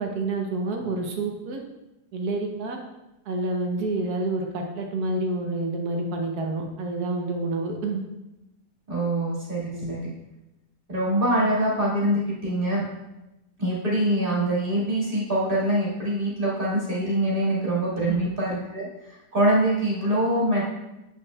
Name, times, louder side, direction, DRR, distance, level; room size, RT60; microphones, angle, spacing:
voice 1, 0.0-1.6 2.1-2.8 3.3-8.0 9.7-9.9 18.0-18.3, right 2 dB, 70° right, 2 dB, 1.3 m, -28 dB
voice 2, 8.9-10.1 10.9-12.8 13.6-18.9 19.3-20.6, right 1 dB, 30° right, -6 dB, 2.0 m, -24 dB
7.7 x 6.2 x 2.3 m, 0.95 s
omnidirectional pair, 1.8 m